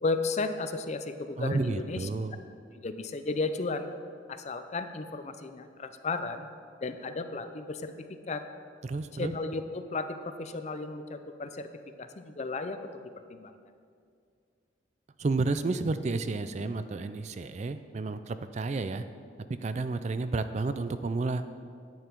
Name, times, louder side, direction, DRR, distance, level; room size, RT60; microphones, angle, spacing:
voice 1, 0.0-2.1 2.8-3.9 4.3-6.5 6.8-7.9 8.3-8.4 9.2-11.7 12.0-12.9 13.3-13.6, left 3 dB, 35° left, 9 dB, 0.5 m, -34 dB
voice 2, 1.4-2.4 8.8-9.3 15.2-19.1 19.6-21.4, right 3 dB, 35° right, 11 dB, 0.3 m, -31 dB
10.5 x 8.9 x 4.5 m, 2.3 s
head